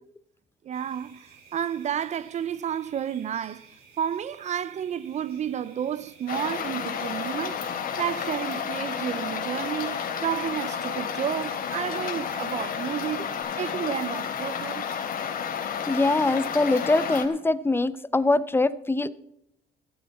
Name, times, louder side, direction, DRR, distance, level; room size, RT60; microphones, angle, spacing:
voice 1, 0.6-3.7 4.0-7.6 8.0-13.3 13.6-15.0, right 9 dB, 45° right, 0.5 m, -31 dB
sound 1, 0.7-13.4, right 5 dB, 70° right, 6.5 m, -54 dB
sound 2, 6.3-17.3, left 7 dB, 55° left, 3.1 m, -31 dB
voice 2, 15.9-19.1, left 2 dB, 15° left, 0.7 m, -23 dB
16.0 x 13.0 x 4.2 m
cardioid pair, 110°, 17 cm